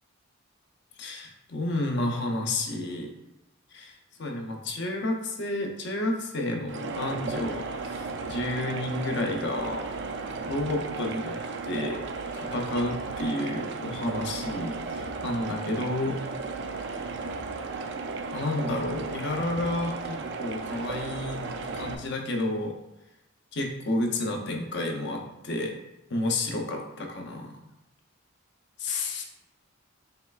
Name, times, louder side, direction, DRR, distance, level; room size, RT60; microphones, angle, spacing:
voice 1, 1.0-3.1 3.7-9.9 10.5-11.4 11.6-12.0 12.3-16.2 18.3-22.7 23.5-25.8 26.1-27.6 28.8-29.2, left 1 dB, 55° left, 3 dB, 0.6 m, -31 dB
sound 1, 6.7-21.9, right 4 dB, 55° right, 0.3 m, -35 dB
5.6 x 3.2 x 2.3 m, 0.89 s
head